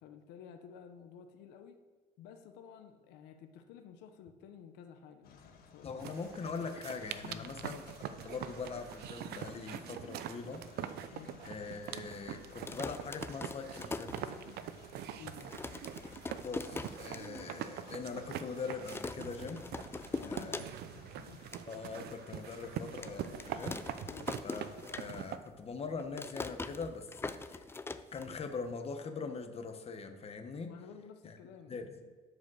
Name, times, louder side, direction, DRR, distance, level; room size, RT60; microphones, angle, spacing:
voice 1, 0.0-1.8 2.2-6.1 7.2-7.5 11.1-11.4 15.1-15.5 20.2-21.4 24.0-24.4 30.6-32.1, left 7 dB, 90° left, 7 dB, 0.9 m, -53 dB
sound 1, 5.2-24.8, left 5 dB, 65° left, 1.5 m, -57 dB
voice 2, 5.8-7.9 8.2-11.2 11.4-14.3 16.4-20.0 20.3-20.7 21.7-24.1 24.4-27.6 28.1-30.7 31.2-31.4 31.7-31.9, left 4 dB, 35° left, 6 dB, 1.1 m, -42 dB
OM-FR-feet-trample-ground, 6.0-25.4, right 10 dB, 70° right, 0.6 m, -44 dB
sound 2, 12.5-14.8 15.1-15.2 15.4-17.5 17.8-17.9 18.1-18.5 18.9-21.0 21.3-21.6 22.2-22.3 23.0-25.5 25.7-28.7, left 3 dB, 15° left, 0.5 m, -42 dB
12.0 x 5.2 x 6.3 m, 1.5 s
cardioid pair, 110°, 17 cm